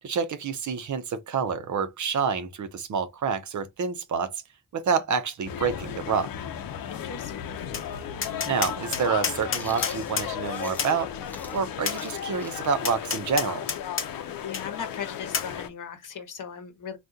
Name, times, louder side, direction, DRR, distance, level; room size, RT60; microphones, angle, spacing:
voice 1, 0.0-4.4 4.7-6.3 8.4-11.1 11.5-13.6, right 6 dB, 60° right, 0.7 m, -28 dB
sound 1, 5.5-15.7, left 9 dB, 85° left, 0.6 m, -35 dB
voice 2, 6.9-7.5 14.4-17.0, left 7 dB, 65° left, 1.0 m, -38 dB
Tap, 7.7-7.9 8.2-10.3 10.8-10.9 11.9-12.0 12.8-14.1 14.5-14.6 15.3-15.5, left 6 dB, 35° left, 0.8 m, -29 dB
Chewing mastication, 9.6-11.0 11.3-14.9, left 2 dB, 5° left, 0.5 m, -46 dB
3.6 x 2.3 x 2.7 m
wide cardioid pair, 140°, 34 cm